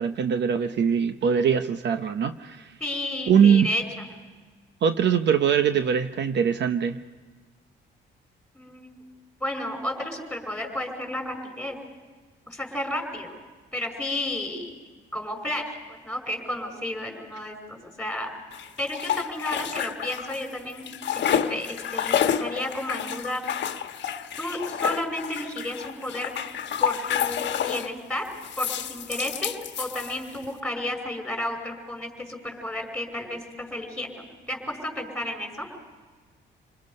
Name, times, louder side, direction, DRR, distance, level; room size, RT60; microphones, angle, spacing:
voice 1, 0.0-2.7 3.3-3.7 4.8-7.0, right 7 dB, 65° right, 9 dB, 0.9 m, -22 dB
voice 2, 2.8-4.1 8.5-9.0 9.4-11.8 12.5-13.4 13.7-14.7 15.1-18.3 18.8-21.2 21.5-23.4 24.4-26.3 26.8-28.2 28.6-29.5 29.8-35.7, left 1 dB, 5° left, 4 dB, 5.4 m, -32 dB
sound 1, 18.5-20.5 20.7-27.9 28.4-30.5, left 9 dB, 60° left, 1.2 m, -29 dB
28.0 x 20.5 x 5.4 m, 1.4 s
cardioid pair, 90°, 20 cm